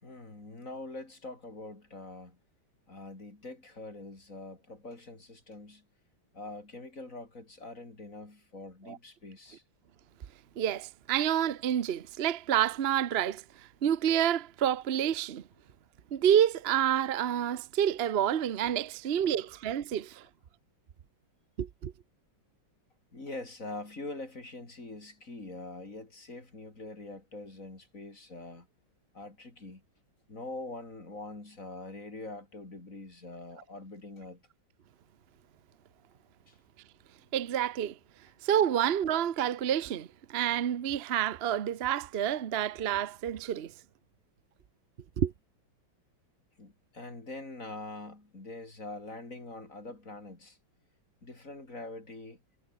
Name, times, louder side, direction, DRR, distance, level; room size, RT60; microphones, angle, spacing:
voice 1, 0.0-2.4 2.9-5.8 6.3-9.6 19.2-19.5 19.9-20.0 23.1-28.7 29.1-29.8 30.3-34.4 36.5-36.6 42.4-42.5 46.6-50.6 51.2-52.4, left 2 dB, 40° left, 4.9 m, -44 dB
voice 2, 10.6-13.4 13.8-15.4 16.1-20.2 21.6-21.9 37.3-38.0 38.4-43.7 45.2-45.3, right 10 dB, 60° right, 0.6 m, -28 dB
omnidirectional pair, 2.2 m